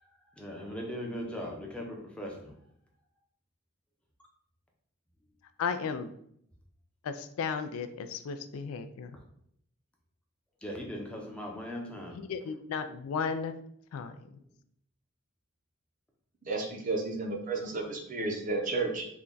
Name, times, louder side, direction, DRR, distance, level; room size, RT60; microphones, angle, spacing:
voice 1, 0.3-2.5 10.6-12.2, equal, 5° left, 0 dB, 0.5 m, -39 dB
voice 2, 5.6-6.1 7.0-9.2 12.1-13.5 13.9-14.1, left 5 dB, 75° left, 10 dB, 0.3 m, -34 dB
voice 3, 16.4-19.1, right 3 dB, 40° right, 2 dB, 0.5 m, -32 dB
3.5 x 2.2 x 3.8 m, 0.69 s
head